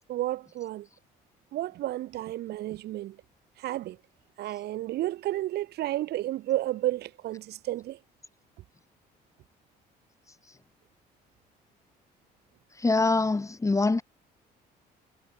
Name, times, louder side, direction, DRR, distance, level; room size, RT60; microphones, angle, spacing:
voice 1, 0.1-0.9 1.5-3.2 3.6-4.0 4.4-8.0, right 15 dB, 75° right, 7.4 m, -31 dB
voice 2, 12.8-14.0, left 3 dB, 20° left, 7.6 m, -24 dB
cardioid pair, 110°, 17 cm